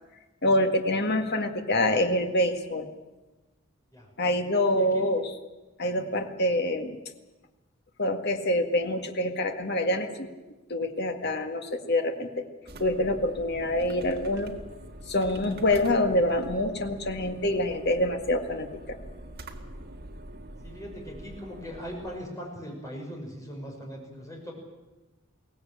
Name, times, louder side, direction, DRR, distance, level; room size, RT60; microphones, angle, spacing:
voice 1, 0.4-2.9 4.2-5.3 5.8-6.9 8.0-10.3 10.7-12.5 12.8-14.5 15.1-19.0, left 1 dB, 50° left, 5 dB, 1.9 m, -26 dB
sound 1, 12.7-22.2, right 1 dB, 50° right, 1.9 m, -44 dB
voice 2, 20.6-24.5, equal, 15° left, 0 dB, 5.8 m, -40 dB
23.0 x 17.5 x 8.7 m, 1.1 s
head